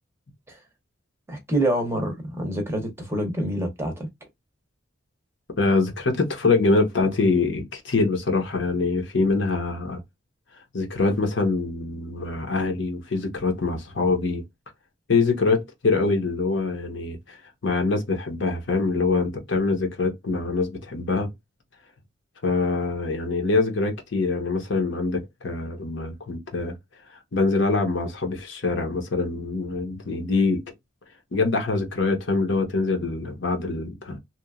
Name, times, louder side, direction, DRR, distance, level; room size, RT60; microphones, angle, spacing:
voice 1, 1.3-4.1, right 1 dB, 15° right, 0.7 m, -26 dB
voice 2, 5.6-10.0 10.7-14.4 15.1-21.3 22.4-26.8 27.1-30.6 31.3-34.2, left 3 dB, 65° left, 0.8 m, -24 dB
2.9 x 2.2 x 2.3 m
head